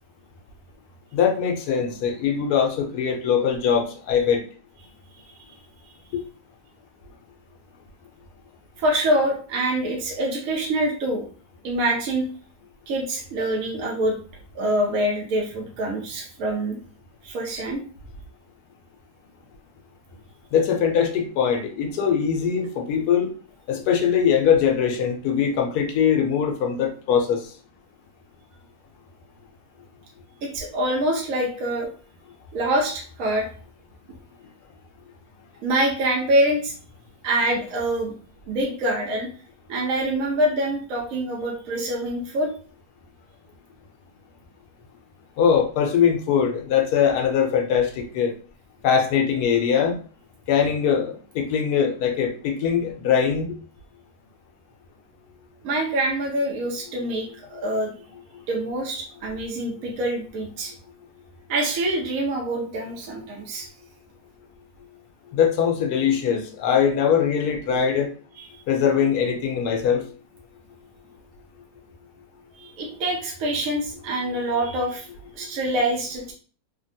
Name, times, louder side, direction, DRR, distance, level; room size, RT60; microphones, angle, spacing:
voice 1, 1.1-4.4 6.1-6.2 20.5-23.3 23.7-27.5 45.4-48.3 48.8-49.9 50.5-53.5 65.3-68.1 68.7-70.1 74.3-74.4, left 7 dB, 85° left, 1.1 m, -21 dB
voice 2, 5.1-5.6 8.8-11.3 11.6-12.3 12.9-14.2 14.5-16.8 17.2-17.8 30.4-31.9 32.5-33.5 35.6-36.7 37.2-38.2 38.5-39.3 39.7-42.5 55.6-57.9 58.5-60.7 61.5-63.7 68.4-68.5 72.6-75.1 75.4-76.3, right 1 dB, 65° right, 1.0 m, -25 dB
3.3 x 2.2 x 2.6 m
omnidirectional pair, 1.6 m